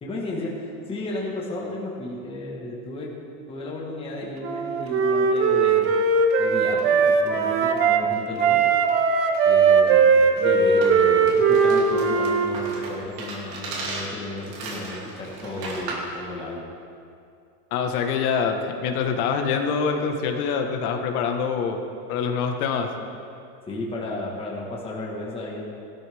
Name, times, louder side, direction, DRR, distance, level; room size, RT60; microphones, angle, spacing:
voice 1, 0.0-3.1 3.5-6.0 6.4-8.6 9.4-16.7 23.6-25.6, left 2 dB, 10° left, -3 dB, 1.5 m, -33 dB
Wind instrument woodwind instrument, 4.4-8.0 8.4-12.5, right 5 dB, 30° right, 0.7 m, -19 dB
sound 1, 10.8-16.2, right 3 dB, 60° right, 2.9 m, -36 dB
voice 2, 17.7-21.8 22.1-22.9, left 6 dB, 80° left, 4 dB, 1.5 m, -25 dB
16.0 x 12.5 x 3.5 m, 2.5 s
supercardioid pair, 165°, 44 cm